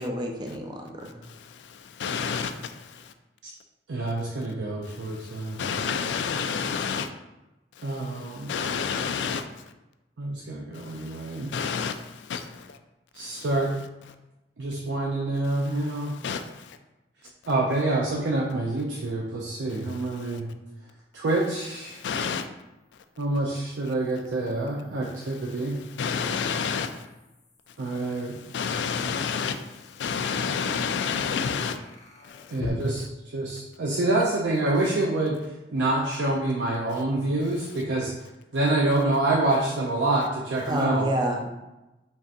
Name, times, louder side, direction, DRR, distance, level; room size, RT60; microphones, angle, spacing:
voice 1, 0.0-1.2 40.6-41.5, right 1 dB, 25° right, 1 dB, 0.4 m, -28 dB
voice 2, 1.3-3.1 4.8-7.1 7.8-9.5 10.7-12.8 13.2-13.4 15.8-16.8 19.9-20.4 21.9-22.5 25.6-27.1 27.9-31.8 32.2-32.6, left 6 dB, 80° left, 9 dB, 0.3 m, -31 dB
voice 3, 3.9-5.6 7.8-8.5 10.2-11.5 13.1-13.7 14.6-16.2 17.5-20.5 21.1-22.0 23.2-25.8 27.8-28.4 32.5-35.4 35.7-38.1 38.5-41.1, right 2 dB, 90° right, -3 dB, 0.5 m, -27 dB
sound 1, 19.0-19.1 22.5-32.7, left 2 dB, 40° left, 0.6 m, -47 dB
5.2 x 2.8 x 2.5 m, 1.0 s
head